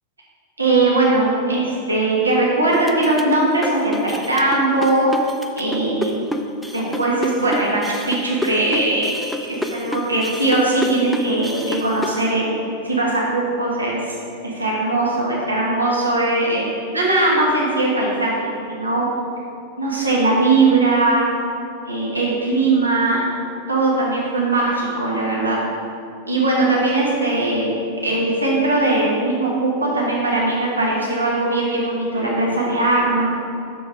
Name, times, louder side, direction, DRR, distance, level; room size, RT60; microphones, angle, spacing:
voice 1, 0.6-5.1 5.6-6.3 6.7-9.2 9.7-14.2 14.4-16.7 16.9-19.0 19.8-21.3 21.9-23.2 23.7-25.6 26.3-27.7 28.0-33.2, right 2 dB, 80° right, -4 dB, 1.6 m, -20 dB
sound 1, 2.7-12.2, left 1 dB, ahead, 0.5 m, -28 dB
7.0 x 6.7 x 4.9 m, 2.6 s
figure-of-eight pair, 90°, 0 cm